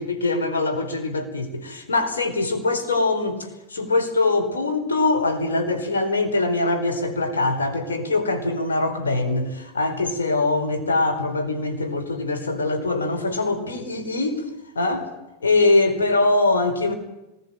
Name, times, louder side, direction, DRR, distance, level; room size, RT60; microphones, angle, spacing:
voice 1, 0.0-14.4 14.7-15.1 15.4-16.9, left 2 dB, 70° left, 4.6 m, -23 dB
26.0 x 21.0 x 8.9 m
figure-of-eight pair, 90°, 0 cm